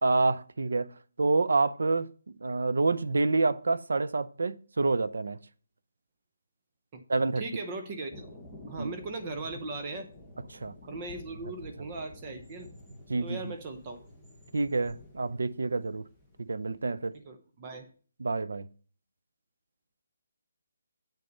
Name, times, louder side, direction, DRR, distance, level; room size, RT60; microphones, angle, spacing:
voice 1, 0.0-2.1 2.4-5.4 7.1-7.4 8.8-8.9 10.5-10.7 13.1-13.5 14.5-16.1 16.4-17.1 18.2-18.7, right 3 dB, 85° right, 0.7 m, -28 dB
voice 2, 7.4-8.2 8.7-10.1 10.9-12.7 13.2-14.0 17.1-17.9, right 3 dB, 20° right, 0.7 m, -38 dB
Thunder, 8.1-17.1, left 1 dB, 5° right, 1.1 m, -50 dB
8.4 x 6.6 x 4.0 m
hypercardioid pair, 175°, 0 cm